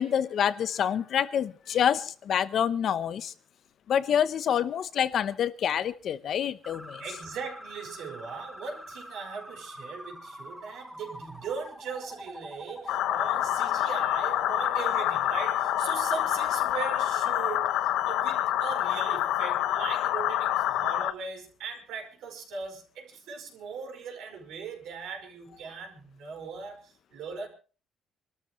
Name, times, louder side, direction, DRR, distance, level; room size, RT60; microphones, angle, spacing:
voice 1, 0.0-3.3 3.9-7.0, left 9 dB, 50° left, 0.9 m, -27 dB
sound 1, 6.6-16.3, equal, ahead, 0.9 m, -44 dB
voice 2, 7.0-27.5, right 5 dB, 70° right, 5.3 m, -39 dB
sound 2, 12.9-21.1, left 13 dB, 85° left, 0.8 m, -27 dB
27.0 x 13.0 x 3.2 m
cardioid pair, 160°, 0 cm